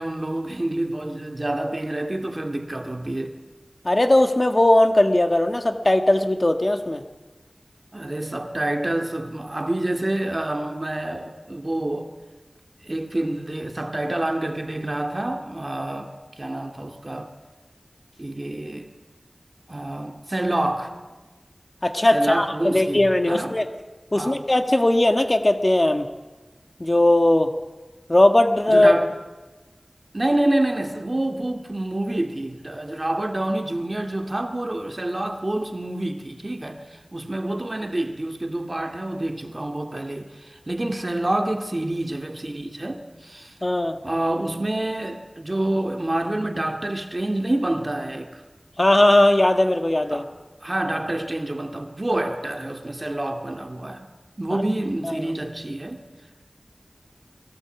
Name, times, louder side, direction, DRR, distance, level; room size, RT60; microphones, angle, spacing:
voice 1, 0.0-3.4 7.9-12.1 12.8-17.3 18.2-18.9 19.7-20.9 22.1-23.6 24.2-24.4 28.7-29.1 30.1-43.6 44.0-48.4 50.1-50.3 50.6-54.1 54.4-56.0, right 1 dB, 40° right, 2.3 m, -27 dB
voice 2, 3.8-7.0 21.8-23.7 24.1-26.1 26.8-27.5 28.1-28.9 43.6-44.0 48.8-50.2 54.5-54.6 55.0-55.1, left 1 dB, 40° left, 1.6 m, -18 dB
22.5 x 17.0 x 8.4 m
wide cardioid pair, 45°, 0 cm